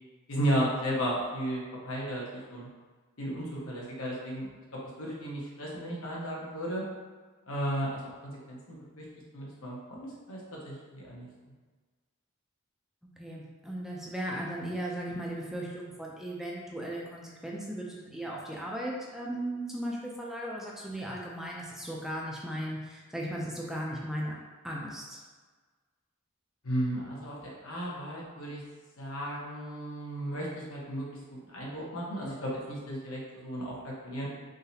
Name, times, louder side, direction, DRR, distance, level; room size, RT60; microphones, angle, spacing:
voice 1, 0.3-2.7 3.2-4.5 5.0-6.8 7.5-9.0 9.3-10.4 10.6-11.3 26.6-28.6 29.0-34.3, equal, 80° left, -4 dB, 1.2 m, -34 dB
voice 2, 13.2-24.3 24.6-25.2, right 1 dB, ahead, -3 dB, 0.4 m, -37 dB
4.0 x 3.9 x 2.8 m, 1.4 s
head